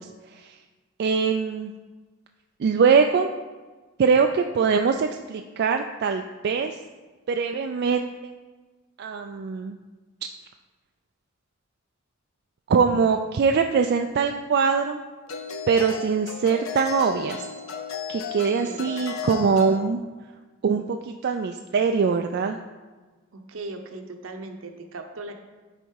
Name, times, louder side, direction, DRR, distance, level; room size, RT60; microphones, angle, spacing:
voice 1, 1.0-1.7 2.6-3.3 4.0-6.8 7.3-8.3 9.0-9.8 12.7-15.0 15.7-17.5 18.1-20.0 20.6-22.6, right 5 dB, 55° right, 5 dB, 0.3 m, -22 dB
sound 1, 13.9-14.0 15.3-19.8, left 6 dB, 80° left, 0.6 m, -34 dB
voice 2, 18.6-18.9 23.3-25.3, right 2 dB, 75° right, 5 dB, 0.8 m, -38 dB
10.0 x 4.1 x 4.7 m, 1.3 s
head